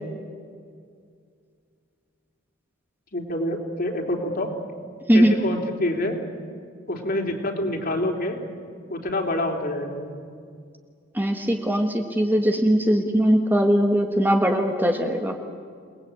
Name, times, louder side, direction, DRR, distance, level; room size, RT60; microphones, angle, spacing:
voice 1, 3.1-4.5 5.1-6.2 6.9-8.4 8.9-10.2, left 1 dB, 50° left, 1 dB, 3.7 m, -27 dB
voice 2, 11.1-15.4, equal, 10° right, 3 dB, 1.5 m, -20 dB
28.5 x 20.0 x 8.7 m, 2.1 s
head